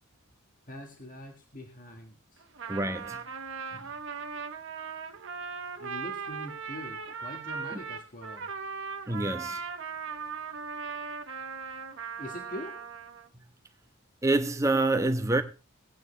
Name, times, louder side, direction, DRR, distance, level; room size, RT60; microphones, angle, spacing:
voice 1, 0.7-2.4 5.8-8.5 12.2-12.9, left 1 dB, 40° left, 1.7 m, -43 dB
Trumpet, 2.4-13.3, right 5 dB, 65° right, 1.2 m, -38 dB
voice 2, 2.7-3.2 3.7-3.8 9.1-9.6 14.2-15.4, right 2 dB, 15° right, 0.9 m, -27 dB
18.5 x 9.0 x 3.3 m
head